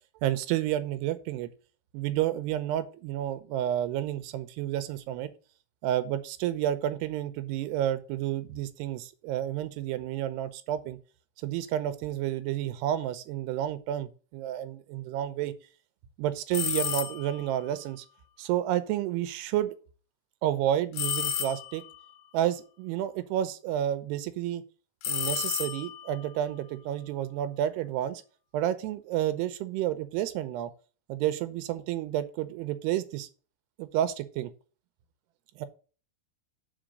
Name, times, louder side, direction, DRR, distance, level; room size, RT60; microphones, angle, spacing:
voice 1, 0.2-1.5 1.9-5.3 5.8-11.0 11.4-15.5 16.2-18.1 18.4-19.7 20.4-21.8 22.3-24.6 25.1-28.2 28.5-30.7 31.1-33.3 33.8-34.5 35.6-35.7, right 12 dB, 85° right, 12 dB, 2.8 m, -30 dB
sound 1, 16.5-17.4 21.0-22.0 25.0-26.2, left 9 dB, 85° left, 2.8 m, -31 dB
5.2 x 5.0 x 6.2 m, 0.37 s
omnidirectional pair, 4.6 m